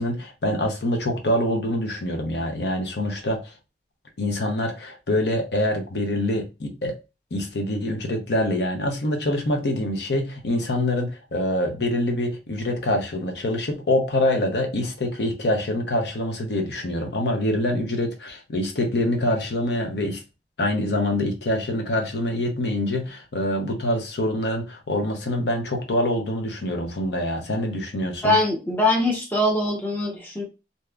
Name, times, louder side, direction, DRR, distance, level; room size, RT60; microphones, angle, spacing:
voice 1, 0.0-3.5 4.2-7.0 7.3-20.2 20.6-28.4, left 1 dB, 75° left, 0.7 m, -25 dB
voice 2, 28.2-30.4, left 1 dB, 10° left, 0.7 m, -22 dB
2.7 x 2.3 x 3.3 m
head